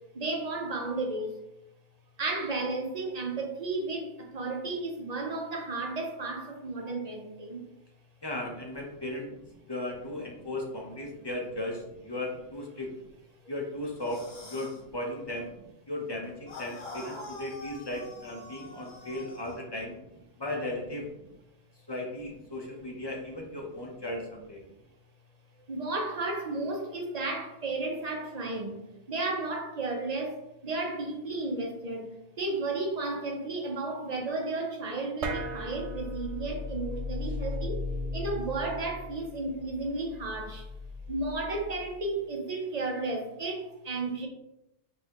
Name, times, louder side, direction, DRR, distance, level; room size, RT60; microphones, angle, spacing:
voice 1, 0.2-1.3 2.2-4.1 4.3-7.6 25.7-28.8 29.1-30.3 30.6-32.1 32.4-37.8 38.1-40.6 41.1-44.3, right 2 dB, 40° right, 1 dB, 0.7 m, -33 dB
voice 2, 8.2-9.3 9.7-12.9 13.5-15.5 15.9-20.0 20.4-21.1 21.9-24.6, left 1 dB, 30° left, 0 dB, 0.5 m, -36 dB
sound 1, 14.0-14.8 16.5-19.6, left 2 dB, 65° left, 1.0 m, -45 dB
sound 2, 35.2-42.0, left 2 dB, 75° right, 0.9 m, -37 dB
5.4 x 2.7 x 2.8 m, 0.87 s
omnidirectional pair, 1.2 m